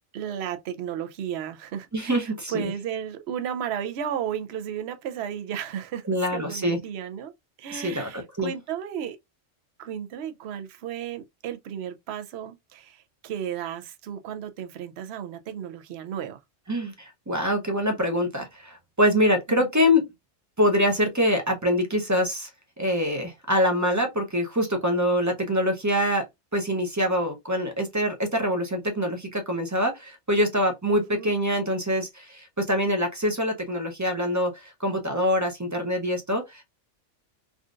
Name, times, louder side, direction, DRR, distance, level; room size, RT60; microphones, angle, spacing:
voice 1, 0.1-6.1 6.3-7.3 7.6-9.2 9.8-16.4 19.5-19.7 30.9-31.3, right 9 dB, 65° right, 0.8 m, -34 dB
voice 2, 1.9-2.7 6.1-6.8 7.7-8.5 16.7-20.0 20.6-22.5 22.8-26.3 26.5-36.7, equal, 20° right, 0.5 m, -25 dB
3.7 x 2.4 x 2.4 m
omnidirectional pair, 1.2 m